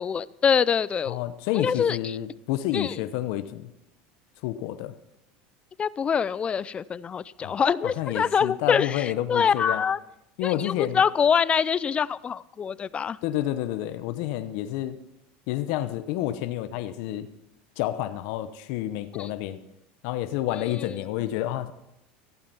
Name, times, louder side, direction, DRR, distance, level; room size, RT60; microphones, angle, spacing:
voice 1, 0.0-1.2 1.6-2.2 2.7-3.0 5.8-10.0 10.4-13.2 19.2-19.3, left 7 dB, 25° left, 19 dB, 0.4 m, -25 dB
voice 2, 1.1-3.7 4.4-4.9 7.4-9.8 10.4-11.0 13.2-15.0 15.5-17.3 17.8-19.6 20.0-21.7, left 13 dB, 70° left, 10 dB, 0.9 m, -29 dB
15.0 x 8.7 x 5.7 m, 0.86 s
supercardioid pair, 120°, 5 cm